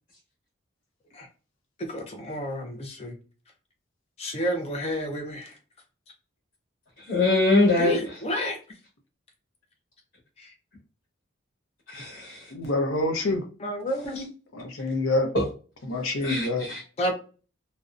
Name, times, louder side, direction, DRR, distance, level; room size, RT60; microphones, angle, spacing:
voice 1, 1.9-3.1 4.2-5.5 7.8-8.6 13.6-14.3 17.0-17.1, equal, 30° left, 0.4 m, -30 dB
voice 2, 7.1-8.0 11.9-12.4 15.3-15.4 16.2-16.8, left 2 dB, 50° left, 1.0 m, -22 dB
voice 3, 12.5-13.4 14.5-15.3 15.9-16.7, left 2 dB, 80° left, 0.6 m, -26 dB
2.6 x 2.0 x 2.4 m
head